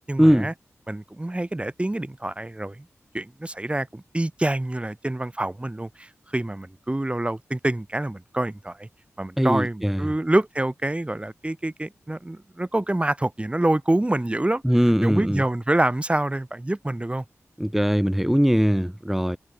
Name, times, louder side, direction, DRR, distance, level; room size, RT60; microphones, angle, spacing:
voice 1, 0.1-0.5 0.9-2.8 3.1-8.9 9.2-14.6 15.0-17.2, right 1 dB, 20° right, 4.4 m, -26 dB
voice 2, 9.4-10.1 14.6-15.4 17.6-19.4, equal, 5° right, 3.1 m, -20 dB
cardioid pair, 50°, 5 cm